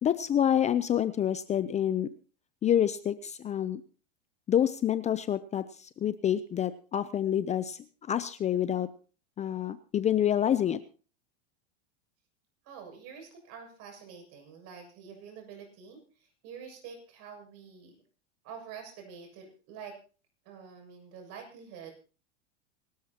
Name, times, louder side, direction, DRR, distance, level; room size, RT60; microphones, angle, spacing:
voice 1, 0.0-2.1 2.6-3.8 4.5-7.8 8.1-8.9 9.4-10.8, left 10 dB, 20° left, 14 dB, 0.6 m, -27 dB
voice 2, 12.6-18.0 18.4-20.0 20.5-21.9, right 6 dB, 50° right, 3 dB, 7.2 m, -47 dB
26.0 x 13.0 x 2.9 m, 0.37 s
supercardioid pair, 125°, 33 cm